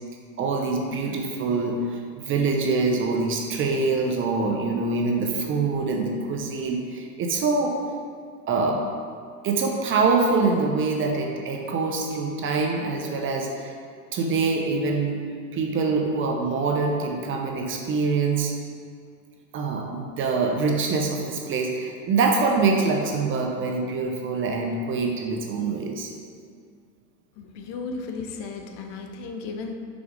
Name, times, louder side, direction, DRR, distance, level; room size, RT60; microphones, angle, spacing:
voice 1, 0.4-2.0 2.3-7.7 8.5-8.8 9.4-13.7 14.1-15.2 15.5-18.5 19.5-26.1, right 4 dB, 25° right, 2 dB, 0.5 m, -24 dB
voice 2, 27.4-29.7, left 4 dB, 50° left, 4 dB, 0.8 m, -35 dB
5.1 x 4.8 x 5.0 m, 2.2 s
supercardioid pair, 130°, 47 cm